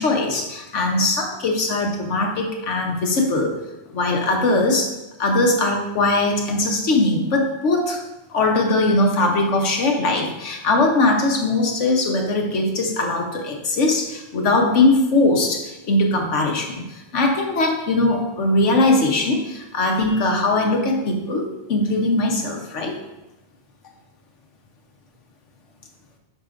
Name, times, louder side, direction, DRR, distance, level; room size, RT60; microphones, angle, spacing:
voice 1, 0.0-3.6 3.9-8.0 8.3-23.0, left 2 dB, 75° left, 2 dB, 1.3 m, -20 dB
7.9 x 5.9 x 2.5 m, 0.99 s
omnidirectional pair, 1.3 m